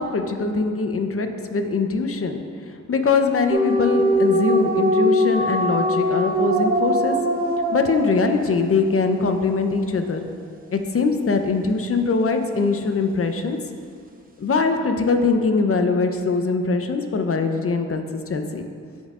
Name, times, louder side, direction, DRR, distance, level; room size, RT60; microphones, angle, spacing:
voice 1, 0.0-2.4 2.7-7.2 7.7-10.2 10.7-13.6 14.4-18.6, left 4 dB, 45° left, 6 dB, 0.9 m, -22 dB
sound 1, 3.5-8.8, equal, 25° right, 1.1 m, -21 dB
14.0 x 5.4 x 2.6 m, 2.2 s
supercardioid pair, 50°, 31 cm